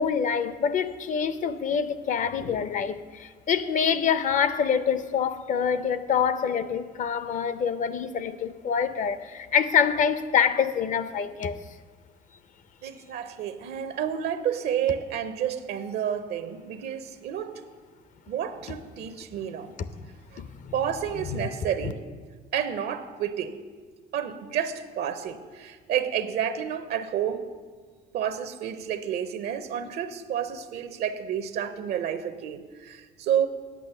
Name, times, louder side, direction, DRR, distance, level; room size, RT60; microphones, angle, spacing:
voice 1, 0.0-11.5 20.4-20.7 21.3-21.4, left 7 dB, 50° left, 0.6 m, -26 dB
voice 2, 12.8-17.6 18.3-19.7 20.3-20.4 20.7-22.0 22.5-23.6 24.1-27.5 28.1-33.5, right 9 dB, 70° right, 0.6 m, -30 dB
8.5 x 8.4 x 6.8 m
cardioid pair, 110°, 17 cm